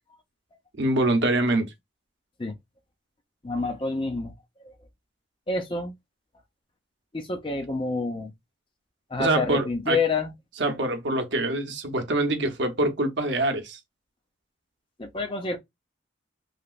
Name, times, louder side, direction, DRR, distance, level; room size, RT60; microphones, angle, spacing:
voice 1, 0.8-1.7 9.2-10.0 10.6-13.8, right 2 dB, 70° right, 0.7 m, -25 dB
voice 2, 3.4-4.3 4.6-4.7 5.5-5.9 7.1-8.3 9.1-10.3 15.0-15.6, left 3 dB, 25° left, 0.5 m, -28 dB
3.2 x 2.8 x 2.4 m
head